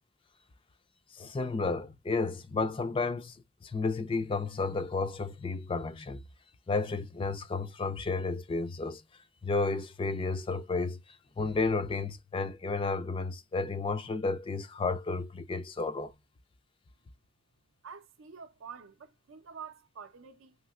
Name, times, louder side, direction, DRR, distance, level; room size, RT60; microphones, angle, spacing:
voice 1, 1.1-3.4 3.6-6.2 6.7-9.0 9.4-11.0 11.4-16.1, left 3 dB, 25° left, 0.3 m, -32 dB
voice 2, 17.8-20.6, right 6 dB, 75° right, 0.5 m, -47 dB
3.2 x 2.7 x 2.3 m
head